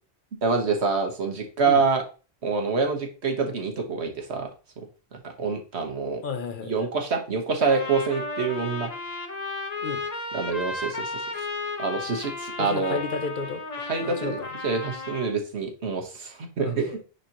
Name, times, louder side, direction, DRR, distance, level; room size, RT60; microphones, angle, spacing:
voice 1, 0.4-2.0 2.4-4.5 5.4-6.2 6.7-8.9 10.3-11.2 11.8-13.0 13.9-17.0, right 4 dB, 85° right, 1.6 m, -26 dB
voice 2, 6.2-6.7 9.8-10.0 12.6-13.6 14.0-14.5 16.6-17.0, left 5 dB, 55° left, 0.8 m, -32 dB
Trumpet, 7.6-15.3, left 2 dB, 40° left, 1.2 m, -34 dB
9.7 x 4.3 x 3.0 m
omnidirectional pair, 1.1 m